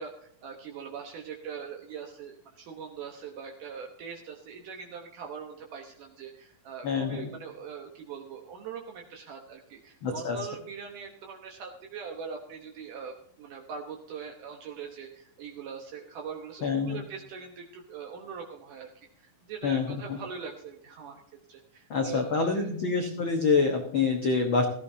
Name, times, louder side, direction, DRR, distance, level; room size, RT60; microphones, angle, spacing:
voice 1, 0.0-21.2 21.5-22.7, right 6 dB, 70° right, 2 dB, 2.5 m, -42 dB
voice 2, 6.8-7.3 10.0-10.4 16.6-17.0 19.6-20.0 21.9-24.7, left 4 dB, 65° left, 2 dB, 1.2 m, -26 dB
17.0 x 14.0 x 2.8 m, 0.68 s
omnidirectional pair, 4.2 m